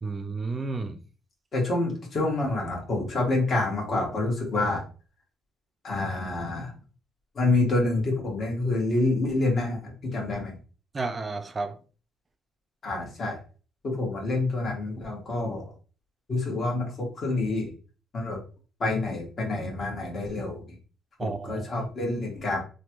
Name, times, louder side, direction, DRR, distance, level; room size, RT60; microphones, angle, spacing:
voice 1, 0.0-1.0 10.9-11.8 21.2-21.9, right 3 dB, 25° right, 0.4 m, -32 dB
voice 2, 1.5-4.8 5.8-6.7 7.3-10.6 12.8-13.4 13.8-15.7 16.3-17.7 18.1-18.4 18.8-20.6 21.2-22.6, left 2 dB, 40° left, 1.4 m, -27 dB
3.2 x 2.3 x 2.9 m
cardioid pair, 115°, 0 cm